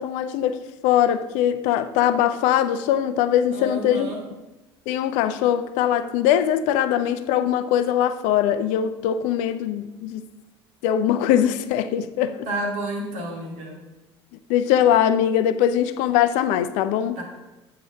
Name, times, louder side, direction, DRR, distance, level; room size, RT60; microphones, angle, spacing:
voice 1, 0.0-4.1 4.9-10.3 10.8-12.5 14.5-17.2, left 10 dB, 60° left, 0.5 m, -21 dB
voice 2, 3.5-4.2 12.5-13.8 17.2-17.3, right 1 dB, 55° right, 2.3 m, -30 dB
8.0 x 4.8 x 5.7 m
figure-of-eight pair, 65°, 14 cm